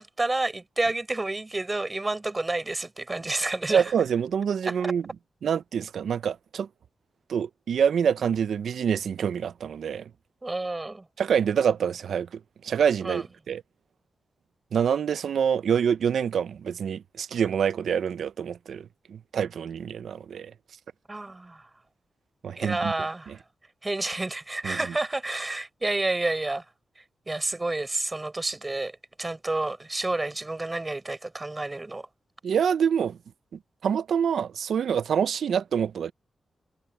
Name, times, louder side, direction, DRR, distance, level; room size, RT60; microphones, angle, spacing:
voice 1, 0.0-3.9 4.7-4.9 10.4-11.0 13.0-13.2 21.1-21.7 22.6-23.4 23.8-26.6 27.0-32.1, right 2 dB, 20° right, 5.9 m, -30 dB
voice 2, 3.7-5.1 5.4-6.7 7.3-10.1 11.2-13.6 14.7-20.5 22.4-22.9 23.3-23.4 24.6-24.8 32.4-33.2 33.8-36.1, right 7 dB, 80° right, 0.5 m, -26 dB
wide cardioid pair, 120°, 0 cm